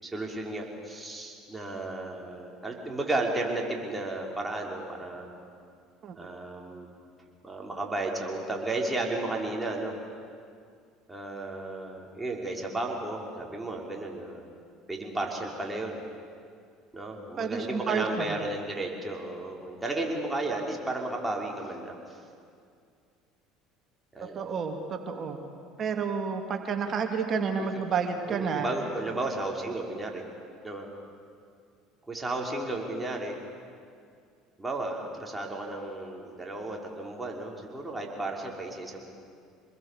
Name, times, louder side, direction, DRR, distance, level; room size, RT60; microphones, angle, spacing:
voice 1, 0.0-5.3 6.1-6.9 7.4-10.0 11.1-14.4 14.9-16.0 16.9-22.2 24.1-24.4 27.6-27.8 28.3-30.2 30.6-30.9 32.1-33.4 34.6-39.0, right 2 dB, 10° right, -1 dB, 5.8 m, -33 dB
voice 2, 17.4-18.4 24.3-25.4 25.8-28.7, right 5 dB, 45° right, 4 dB, 2.8 m, -30 dB
27.0 x 21.5 x 8.7 m, 2.3 s
hypercardioid pair, 70°, 0 cm